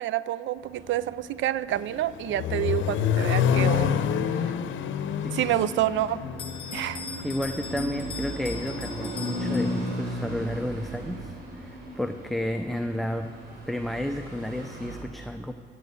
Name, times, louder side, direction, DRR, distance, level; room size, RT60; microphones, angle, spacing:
voice 1, 0.0-4.0 5.3-6.2 6.7-7.0, right 13 dB, 75° right, 17 dB, 0.4 m, -28 dB
sound 1, 0.6-15.0, equal, 55° right, 3.8 m, -37 dB
Accelerating revving vroom, 1.8-7.8, left 9 dB, 75° left, 0.7 m, -27 dB
voice 2, 5.2-5.6 7.2-13.3 13.7-15.5, left 1 dB, ahead, 6 dB, 0.5 m, -32 dB
Bell, 6.4-10.1, left 5 dB, 25° left, 1.3 m, -40 dB
14.0 x 7.9 x 8.1 m, 2.1 s
cardioid pair, 90°, 20 cm